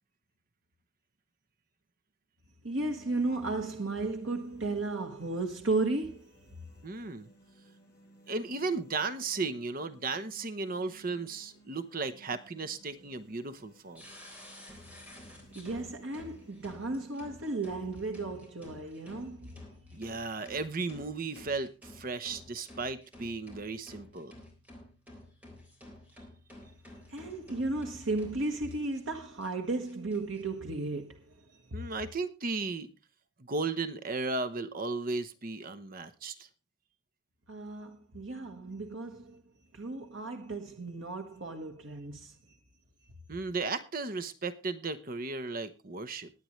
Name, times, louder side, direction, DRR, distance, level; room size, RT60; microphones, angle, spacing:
sound 1, 2.6-18.6, right 1 dB, 15° left, 6.0 m, -60 dB
voice 1, 2.6-6.3 15.5-19.6 27.1-31.4 37.5-39.4 39.7-42.3, right 2 dB, 85° right, 1.5 m, -34 dB
voice 2, 6.8-7.3 8.3-14.0 19.9-24.3 31.7-32.9 33.4-36.5 43.3-46.3, right 3 dB, 45° right, 0.9 m, -35 dB
sound 2, 13.9-29.0 29.4-29.5 29.8-30.4, left 1 dB, 10° right, 3.6 m, -52 dB
21.0 x 8.7 x 3.2 m
head